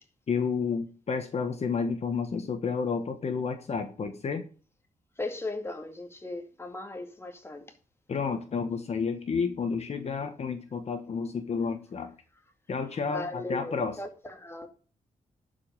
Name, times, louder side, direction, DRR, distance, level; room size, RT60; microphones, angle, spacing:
voice 1, 0.3-4.4 8.1-12.1 12.7-13.9, left 5 dB, 55° left, 1.4 m, -31 dB
voice 2, 5.2-7.7 13.1-14.7, left 2 dB, 20° left, 2.2 m, -37 dB
11.5 x 5.4 x 6.7 m
cardioid pair, 90°, 13 cm